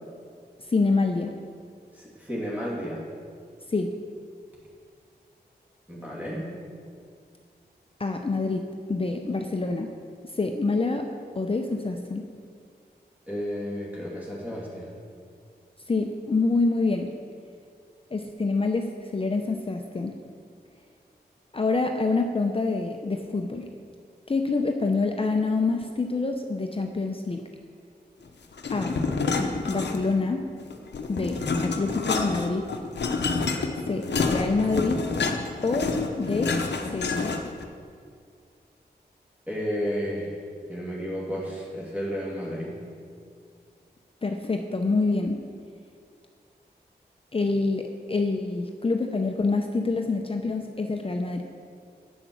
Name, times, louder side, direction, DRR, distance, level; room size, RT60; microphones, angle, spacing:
voice 1, 0.7-1.3 3.7-3.9 8.0-9.9 10.3-11.1 11.4-12.3 15.9-17.1 18.1-20.2 21.5-23.7 24.3-27.4 28.7-29.0 29.7-30.5 31.1-32.7 33.9-35.0 35.6-36.6 36.9-37.4 44.2-45.4 47.3-51.4, left 3 dB, 35° left, 4 dB, 0.6 m, -26 dB
voice 2, 1.9-3.0 5.9-6.5 13.3-15.0 39.5-40.4 40.7-42.8, equal, 10° right, -6 dB, 2.5 m, -32 dB
sound 1, 28.6-30.3 30.6-37.6, left 4 dB, 90° left, 0.8 m, -28 dB
8.2 x 7.3 x 6.2 m, 2.2 s
cardioid pair, 60°, 17 cm